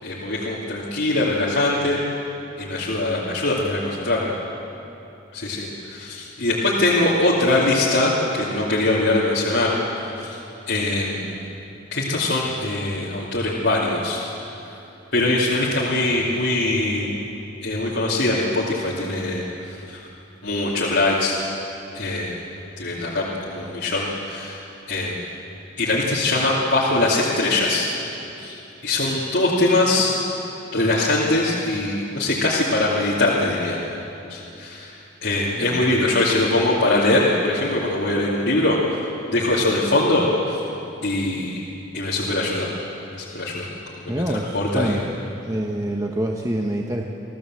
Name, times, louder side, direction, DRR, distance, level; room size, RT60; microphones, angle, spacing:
voice 1, 0.0-2.0 2.6-4.3 5.3-10.4 10.7-11.3 11.9-14.2 15.1-17.1 17.6-20.1 20.4-21.4 21.9-22.4 22.8-25.2 25.8-27.9 28.4-30.2 30.7-33.8 34.3-40.6 41.0-41.6 41.9-42.7 43.2-45.0, left 2 dB, 65° left, -7 dB, 2.7 m, -22 dB
voice 2, 44.1-45.0 45.4-47.1, right 1 dB, 20° right, 1 dB, 1.1 m, -26 dB
26.0 x 16.0 x 7.7 m, 2.9 s
head